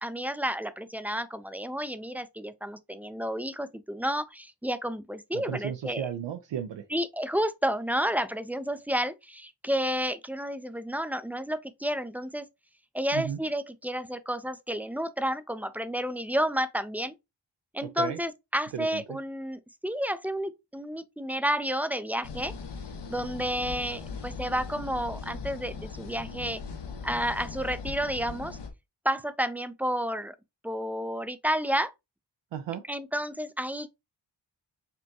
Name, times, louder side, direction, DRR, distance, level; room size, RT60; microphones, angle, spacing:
voice 1, 0.0-6.1 6.9-12.5 12.9-17.1 17.7-22.5 23.1-26.6 27.0-28.6 29.0-30.3 30.6-31.9 32.9-33.9, equal, 5° right, 0.4 m, -31 dB
voice 2, 5.3-6.8 13.1-13.4 17.8-18.2 18.7-19.2 32.5-32.8, right 9 dB, 80° right, 0.6 m, -34 dB
sound 1, 22.2-28.7, left 5 dB, 70° left, 0.9 m, -39 dB
5.3 x 2.2 x 2.7 m
cardioid pair, 60°, 43 cm